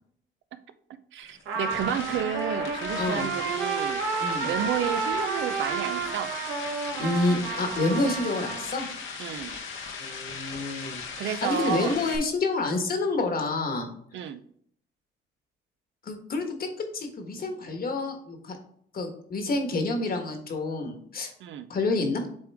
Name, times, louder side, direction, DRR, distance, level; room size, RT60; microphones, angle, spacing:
voice 1, 1.1-4.0 4.4-6.3 9.2-9.5 11.2-12.0 14.1-14.4 21.4-21.7, right 9 dB, 70° right, 11 dB, 0.6 m, -31 dB
sound 1, 1.2-12.2, left 5 dB, 80° left, 1.2 m, -38 dB
Trumpet, 1.5-8.7, right 5 dB, 90° right, 1.0 m, -31 dB
voice 2, 2.9-3.3 4.2-4.5 7.0-8.9 10.0-13.9 16.0-16.7 16.9-18.6 18.9-21.3 21.7-22.2, left 2 dB, 50° left, 5 dB, 1.4 m, -28 dB
7.7 x 3.6 x 3.5 m, 0.64 s
cardioid pair, 90°, 20 cm